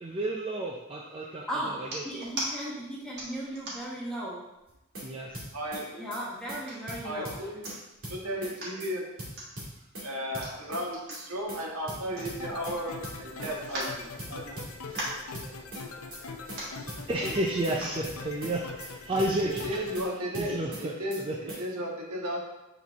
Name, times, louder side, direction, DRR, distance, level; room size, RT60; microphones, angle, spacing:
voice 1, 0.0-2.0 5.0-5.4 17.1-19.6 20.3-21.4, right 1 dB, 25° right, -1 dB, 0.4 m, -31 dB
sound 1, 1.8-2.5 3.2-4.0 4.6-4.7 5.0-5.7 6.3-7.0 7.4-7.5 7.6-8.0 8.4-8.8 9.3-9.5 10.3-12.8 13.1-13.2 13.6-14.6 14.8-15.3 16.1-16.2 16.4-16.8 17.6-18.0 18.6-18.7, right 1 dB, 50° right, 1.6 m, -39 dB
voice 2, 2.0-4.4 5.3-5.4 6.0-7.5, right 1 dB, 5° left, -5 dB, 1.2 m, -36 dB
sound 2, 4.7-5.1 5.3-5.8 6.1-6.2 6.5-6.6 6.9-7.8 8.0-8.5 8.8-8.9 9.2-10.1 10.3-10.8 11.1-11.2 11.5-11.6 11.9-12.8 13.0-13.5 13.8-13.9 14.2-15.1 15.3-15.8 16.1-16.2 16.5-16.6 16.9-17.8 18.0-18.5 18.8-18.9 19.2-20.1 20.3-20.8 21.1-21.2 21.5-21.6, right 1 dB, 65° right, 2.2 m, -40 dB
voice 3, 5.5-6.1 7.0-7.6 8.1-9.1 10.0-14.6 19.4-22.4, equal, 85° right, -2 dB, 1.5 m, -35 dB
sound 3, 12.1-20.0, left 4 dB, 75° left, 0.7 m, -42 dB
7.5 x 4.0 x 3.5 m, 0.95 s
head